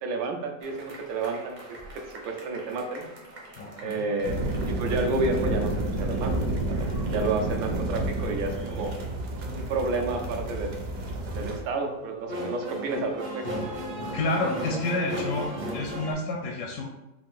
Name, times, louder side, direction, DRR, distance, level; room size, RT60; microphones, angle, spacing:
voice 1, 0.0-3.1 3.8-8.9 9.5-10.8 11.3-13.5, right 3 dB, 80° right, 3 dB, 1.4 m, -31 dB
sound 1, 0.6-16.1, equal, 45° right, 0.6 m, -39 dB
voice 2, 3.6-4.1 14.1-16.8, left 2 dB, 70° left, 1 dB, 0.9 m, -29 dB
sound 2, 4.2-11.6, right 1 dB, 65° right, 1.2 m, -30 dB
4.5 x 2.5 x 3.6 m, 0.99 s
omnidirectional pair, 2.1 m